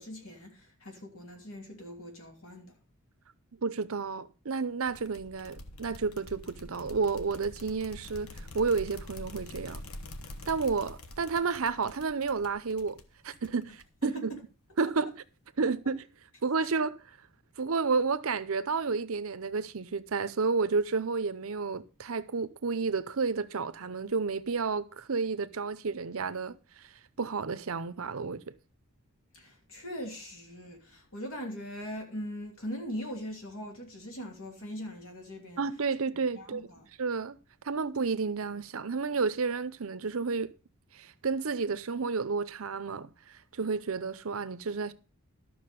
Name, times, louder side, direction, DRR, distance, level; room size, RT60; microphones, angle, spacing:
voice 1, 0.0-2.7 14.0-14.4 16.6-16.7 29.3-35.6 36.3-36.9, equal, 65° left, 2.8 m, -41 dB
voice 2, 3.6-8.3 8.5-9.8 10.5-14.3 14.8-15.2 15.6-16.1 16.4-17.0 17.6-26.6 27.2-28.5 35.6-36.7 37.0-37.4 37.6-40.5 40.9-43.1 43.5-44.9, right 4 dB, 70° right, 0.7 m, -31 dB
sound 1, 4.9-14.1, left 1 dB, 90° left, 1.1 m, -46 dB
12.0 x 6.3 x 5.2 m
head